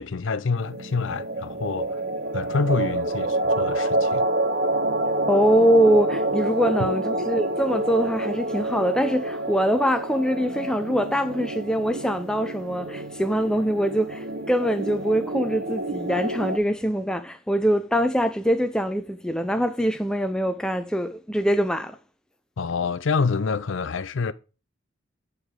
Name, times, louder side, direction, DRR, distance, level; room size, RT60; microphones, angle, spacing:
voice 1, 0.0-2.0 2.3-4.3 22.6-24.3, left 4 dB, 70° left, 0.5 m, -27 dB
sound 1, 0.6-16.6, right 1 dB, 50° right, 0.6 m, -28 dB
voice 2, 5.3-22.0, equal, 5° left, 0.5 m, -23 dB
8.4 x 4.7 x 3.6 m
head